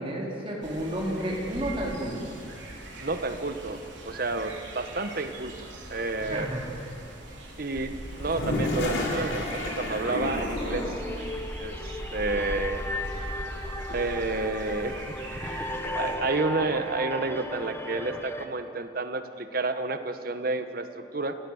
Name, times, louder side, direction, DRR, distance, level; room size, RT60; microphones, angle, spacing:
voice 1, 0.0-2.4 6.3-6.7, right 1 dB, 30° right, -2 dB, 4.0 m, -31 dB
sound 1, 0.6-16.2, right 1 dB, 75° right, 3.8 m, -40 dB
voice 2, 3.0-6.5 7.6-11.0 11.6-12.8 13.9-15.0 16.0-21.4, right 3 dB, 50° right, 9 dB, 1.2 m, -30 dB
Toilet flush, 8.1-11.1, left 1 dB, 80° left, 4.3 m, -30 dB
sound 2, 9.7-18.5, left 1 dB, 15° left, 1.2 m, -36 dB
29.0 x 17.5 x 6.6 m, 2.4 s
head